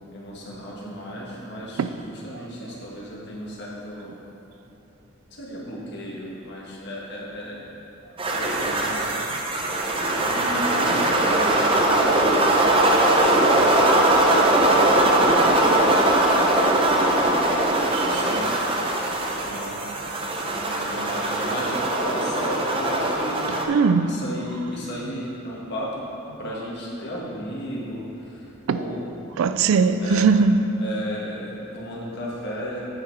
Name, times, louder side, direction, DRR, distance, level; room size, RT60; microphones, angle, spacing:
voice 1, 0.1-4.1 5.3-7.6 8.3-9.0 10.2-11.0 11.3-14.6 15.7-16.5 16.9-17.3 18.0-18.5 19.0-19.1 19.4-19.8 20.2-23.5 24.0-26.0 26.4-29.0 30.0-30.3 30.8-32.9, equal, 55° left, 1.7 m, -35 dB
sound 1, 8.2-23.7, right 1 dB, 25° right, 0.6 m, -21 dB
voice 2, 15.2-15.6 17.9-18.1 19.2-19.5 23.7-24.1 28.7-28.8 29.4-30.8, right 5 dB, 80° right, 0.4 m, -21 dB
8.9 x 5.8 x 4.7 m
head